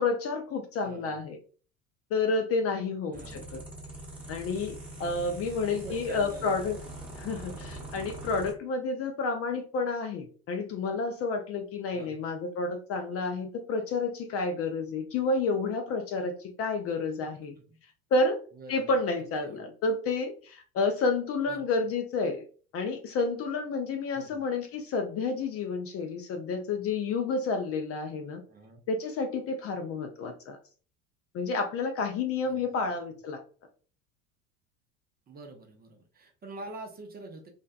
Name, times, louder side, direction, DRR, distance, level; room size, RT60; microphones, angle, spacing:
voice 1, 0.0-1.4 2.1-3.6 4.3-6.8 7.2-17.6 18.1-18.4 18.7-22.4 22.7-28.4 28.9-30.6 31.3-33.4, left 3 dB, 35° left, 5 dB, 0.4 m, -30 dB
voice 2, 0.8-1.2 3.1-3.6 5.0-6.7 11.9-12.3 17.2-17.3 17.6-17.8 18.5-18.9 19.2-19.6 21.5-21.6 24.1-24.4 28.5-28.8 32.5-32.8 35.3-37.5, right 2 dB, 20° right, 2 dB, 0.5 m, -46 dB
sound 1, 3.1-8.5, right 1 dB, 5° right, 1.0 m, -43 dB
2.6 x 2.1 x 2.3 m, 0.40 s
hypercardioid pair, 75°, 42 cm